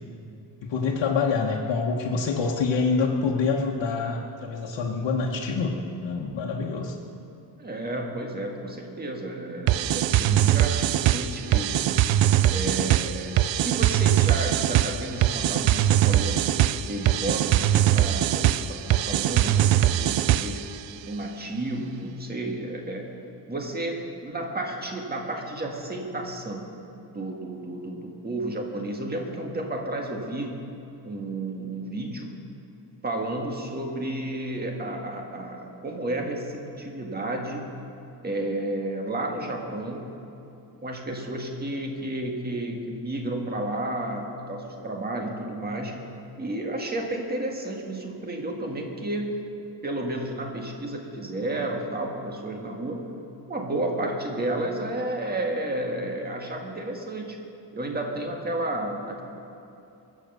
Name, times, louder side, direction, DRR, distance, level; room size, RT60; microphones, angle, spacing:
voice 1, 0.6-6.9, left 4 dB, 80° left, -3 dB, 1.4 m, -26 dB
voice 2, 7.6-12.0 12.5-13.3 13.6-16.5 16.9-20.6 21.1-23.0 23.5-26.6 27.1-30.6 31.0-32.3 33.0-37.7 38.2-40.1 40.8-46.0 46.4-49.4 49.8-53.1 53.5-57.4 57.7-59.2, right 1 dB, 20° right, 1 dB, 1.7 m, -32 dB
sound 1, 9.7-20.7, right 12 dB, 90° right, 0.6 m, -22 dB
23.0 x 7.9 x 6.8 m, 2.9 s
wide cardioid pair, 170°, 43 cm